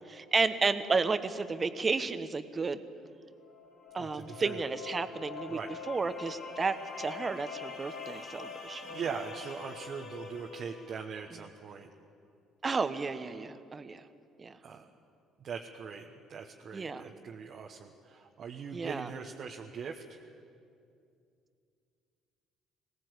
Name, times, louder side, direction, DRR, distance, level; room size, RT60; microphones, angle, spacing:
voice 1, 0.1-2.8 3.9-5.6 5.9-9.0 12.6-14.0 14.4-14.6 16.7-17.0 18.7-19.1, right 4 dB, 30° right, 11 dB, 1.2 m, -32 dB
sound 1, 3.4-11.2, left 5 dB, 65° left, 4.0 m, -44 dB
voice 2, 3.9-4.7 5.5-5.7 8.9-11.9 14.6-14.9 15.4-20.2, right 6 dB, 50° right, 1 dB, 1.3 m, -41 dB
21.0 x 17.5 x 8.1 m, 2.4 s
hypercardioid pair, 55°, 0 cm